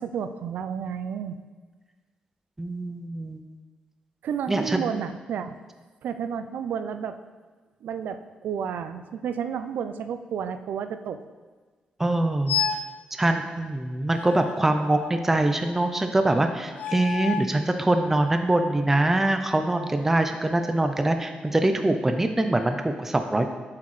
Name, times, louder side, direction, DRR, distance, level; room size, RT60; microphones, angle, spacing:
voice 1, 0.0-1.4 4.2-5.5 6.0-7.2 7.8-11.2, right 7 dB, 85° right, 10 dB, 0.4 m, -31 dB
voice 2, 2.6-3.4 4.5-4.8 12.0-12.6 13.2-23.5, right 2 dB, 10° right, 6 dB, 0.4 m, -23 dB
sound 1, 12.5-13.0 14.1-15.4 16.7-17.6, left 7 dB, 75° left, 0.4 m, -31 dB
7.6 x 5.7 x 3.2 m, 1.4 s
wide cardioid pair, 155°, 3 cm